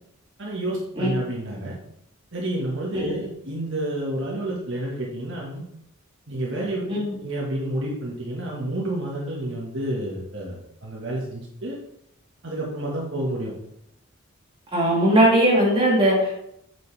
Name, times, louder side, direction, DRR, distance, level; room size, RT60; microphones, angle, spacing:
voice 1, 0.4-1.7 2.3-5.6 6.3-11.8 12.4-13.5, right 1 dB, 60° right, -4 dB, 1.4 m, -29 dB
voice 2, 14.7-16.5, right 1 dB, 25° right, -5 dB, 2.5 m, -19 dB
7.2 x 6.3 x 3.3 m, 0.77 s
head